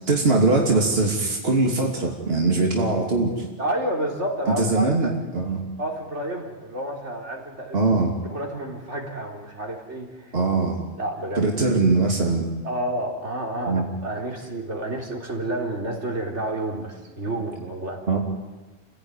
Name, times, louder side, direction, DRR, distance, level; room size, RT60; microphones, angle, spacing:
voice 1, 0.1-3.5 4.5-5.6 7.7-8.1 10.3-10.8 11.4-12.5 13.7-13.8 18.1-18.2, right 3 dB, 60° right, 0 dB, 2.8 m, -21 dB
voice 2, 3.6-5.1 5.8-7.8 8.2-10.4 11.0-11.4 12.6-18.0, right 1 dB, 90° right, 0 dB, 4.1 m, -30 dB
29.0 x 16.5 x 9.8 m, 1.2 s
omnidirectional pair, 1.1 m